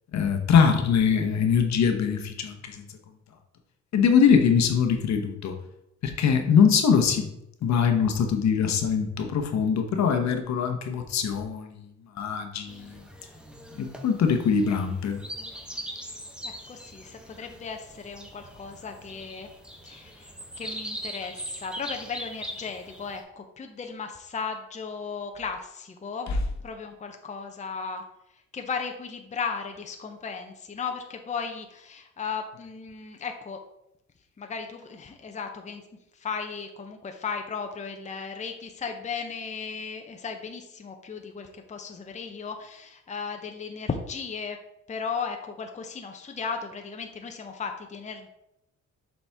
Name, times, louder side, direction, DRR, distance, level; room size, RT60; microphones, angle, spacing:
voice 1, 0.1-2.8 3.9-5.5 6.0-7.3 7.6-11.7 12.2-12.9 13.8-15.2 26.3-26.4, left 6 dB, 65° left, 5 dB, 1.0 m, -22 dB
sound 1, 12.7-23.2, equal, 5° right, 0.9 m, -41 dB
voice 2, 16.1-19.5 19.8-20.3 20.6-26.3 26.6-28.1 28.3-33.6 34.4-35.8 36.1-44.6 44.9-48.3, left 5 dB, 25° left, 5 dB, 0.7 m, -36 dB
7.1 x 4.3 x 3.4 m, 0.83 s
cardioid pair, 90°, 30 cm